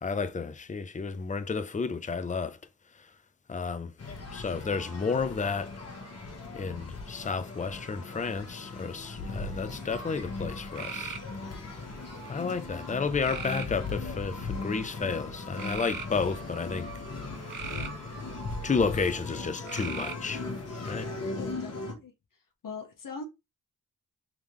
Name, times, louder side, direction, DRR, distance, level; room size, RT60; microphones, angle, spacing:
voice 1, 0.0-2.6 3.5-3.9 4.3-5.7 6.5-11.2 12.3-16.9 18.6-20.4 20.8-21.1, left 5 dB, 20° left, 0.5 m, -31 dB
sound 1, 4.0-21.9, left 3 dB, 45° left, 1.3 m, -38 dB
sound 2, 9.8-10.2 10.8-11.3 12.0-12.5 13.2-13.7 14.4-14.8 15.5-16.1 17.2-18.0 19.7-20.3, right 6 dB, 60° right, 0.7 m, -39 dB
voice 2, 12.4-13.2 21.4-22.1 22.6-23.2, left 4 dB, 65° left, 1.0 m, -43 dB
3.6 x 3.5 x 3.1 m
wide cardioid pair, 90°, 36 cm